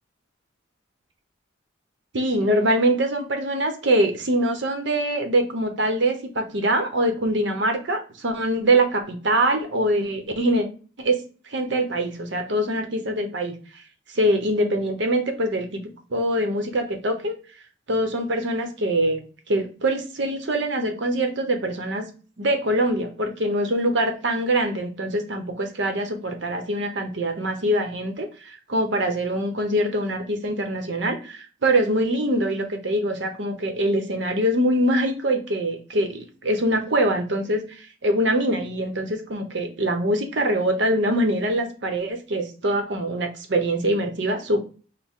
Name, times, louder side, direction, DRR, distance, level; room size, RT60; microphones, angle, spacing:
voice 1, 2.1-10.7 11.0-11.2 11.5-13.5 14.1-15.8 16.1-17.3 17.9-19.2 19.5-22.1 22.4-44.6, right 1 dB, 70° right, 5 dB, 0.8 m, -23 dB
6.2 x 2.1 x 3.6 m, 0.37 s
head